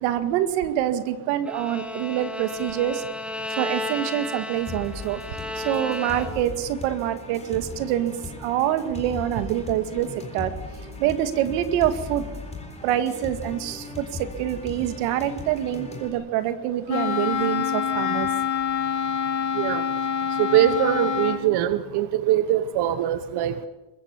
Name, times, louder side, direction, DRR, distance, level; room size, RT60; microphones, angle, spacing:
voice 1, 0.0-3.0 3.6-5.2 5.6-8.1 8.4-10.5 11.0-12.2 12.8-18.3, right 11 dB, 80° right, 9 dB, 2.2 m, -26 dB
Bowed string instrument, 1.4-6.6, left 2 dB, ahead, 1.7 m, -33 dB
sound 1, 4.7-16.1, left 4 dB, 15° left, 4.1 m, -38 dB
Wind instrument woodwind instrument, 16.9-21.5, left 7 dB, 40° left, 2.4 m, -26 dB
voice 2, 20.4-23.7, right 11 dB, 55° right, 11 dB, 1.3 m, -22 dB
23.0 x 22.0 x 7.2 m, 1.1 s
cardioid pair, 135°, 48 cm